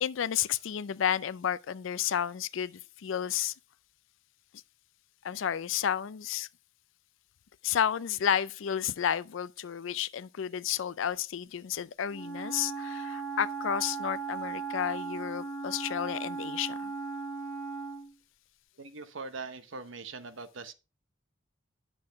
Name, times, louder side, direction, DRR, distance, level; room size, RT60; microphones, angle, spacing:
voice 1, 0.0-3.5 5.2-6.5 7.6-16.9, left 9 dB, 70° left, 0.4 m, -31 dB
Wind instrument woodwind instrument, 12.1-18.1, right 4 dB, 10° left, 2.2 m, -37 dB
voice 2, 18.8-20.7, right 4 dB, 70° right, 0.9 m, -41 dB
9.6 x 6.2 x 3.4 m
head